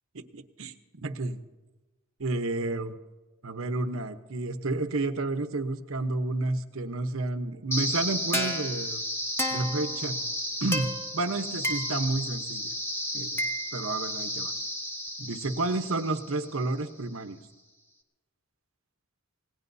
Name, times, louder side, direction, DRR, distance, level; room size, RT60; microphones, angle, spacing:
voice 1, 0.1-1.4 2.2-2.9 3.4-9.0 9.5-10.2 10.6-12.7 13.1-13.4 13.7-14.5 15.2-17.4, right 2 dB, 80° right, 9 dB, 1.0 m, -31 dB
sound 1, 7.7-16.7, equal, 10° left, 1.2 m, -32 dB
26.0 x 18.5 x 2.7 m, 1.2 s
head